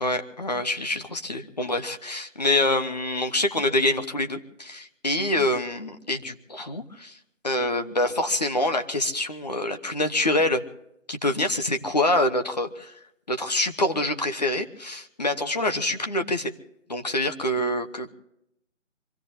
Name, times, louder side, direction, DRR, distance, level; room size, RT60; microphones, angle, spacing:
voice 1, 0.0-7.2 7.4-10.6 11.1-13.0 13.3-16.5 16.9-18.1, left 1 dB, 35° left, 7 dB, 1.1 m, -26 dB
25.5 x 16.5 x 2.8 m, 0.81 s
figure-of-eight pair, 170°, 38 cm